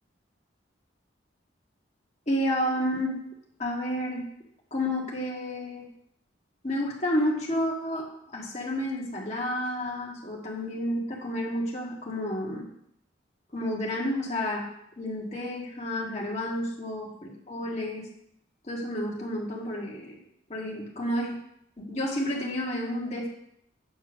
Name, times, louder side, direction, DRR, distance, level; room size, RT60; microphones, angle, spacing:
voice 1, 2.3-3.2 3.6-4.2 4.7-5.9 6.6-12.7 13.5-14.7 15.0-18.0 18.7-20.2 20.5-21.4 21.8-23.3, left 1 dB, 35° left, -3 dB, 1.8 m, -30 dB
8.2 x 4.4 x 6.1 m, 0.74 s
head